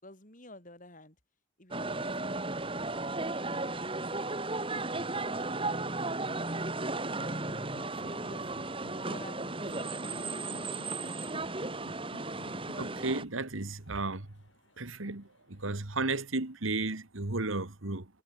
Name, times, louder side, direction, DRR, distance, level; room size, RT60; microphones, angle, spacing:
voice 1, 0.0-1.2 1.6-4.6 5.1-6.2 7.7-8.5 8.9-11.5, left 2 dB, 40° left, 5.6 m, -54 dB
sound 1, 1.7-13.2, right 2 dB, 25° right, 2.8 m, -35 dB
sound 2, 7.1-16.0, equal, 60° left, 7.5 m, -55 dB
voice 2, 12.7-14.3 14.8-18.1, right 3 dB, 70° right, 2.0 m, -34 dB
head